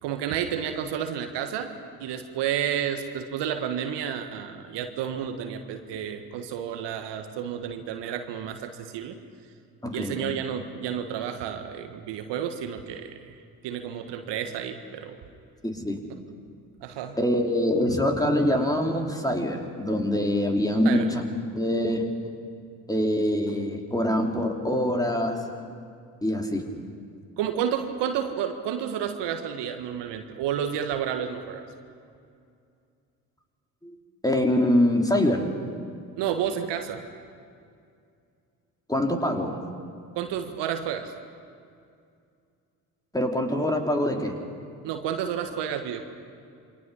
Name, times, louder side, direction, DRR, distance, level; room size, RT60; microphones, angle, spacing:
voice 1, 0.0-1.7 2.0-9.2 9.9-13.4 13.6-15.2 16.8-17.2 20.8-21.1 27.4-31.6 36.2-37.0 40.1-41.1 44.8-46.0, right 9 dB, 60° right, 6 dB, 1.6 m, -31 dB
voice 2, 9.8-10.3 15.6-16.0 17.2-21.2 21.5-22.1 22.9-25.4 26.2-26.7 33.8-33.9 34.2-35.5 38.9-39.6 43.1-44.4, left 1 dB, 10° left, 2 dB, 3.3 m, -24 dB
28.0 x 23.0 x 5.6 m, 2.4 s
hypercardioid pair, 50°, 46 cm